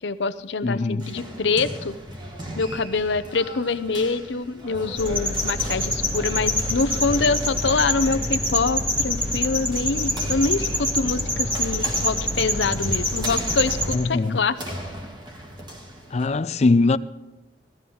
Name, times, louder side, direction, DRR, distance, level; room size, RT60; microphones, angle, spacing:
voice 1, 0.0-1.9 2.6-14.6, left 4 dB, 70° left, 0.7 m, -25 dB
voice 2, 0.6-1.1 13.9-14.4 16.1-17.0, left 3 dB, 35° left, 0.4 m, -21 dB
sound 1, 1.0-16.3, right 1 dB, 25° right, 1.6 m, -38 dB
sound 2, 5.0-14.0, left 1 dB, 10° right, 2.0 m, -25 dB
17.0 x 14.0 x 3.9 m
head